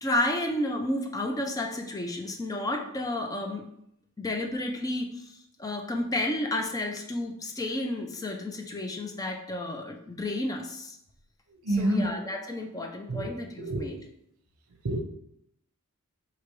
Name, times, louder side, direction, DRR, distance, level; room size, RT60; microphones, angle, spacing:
voice 1, 0.0-3.7 4.2-11.0 11.7-14.0, left 1 dB, 15° left, 3 dB, 0.4 m, -31 dB
voice 2, 11.6-12.1 13.1-13.2 13.7-13.8 14.8-15.0, right 1 dB, 75° right, 4 dB, 0.6 m, -26 dB
4.6 x 2.9 x 3.0 m, 0.75 s
head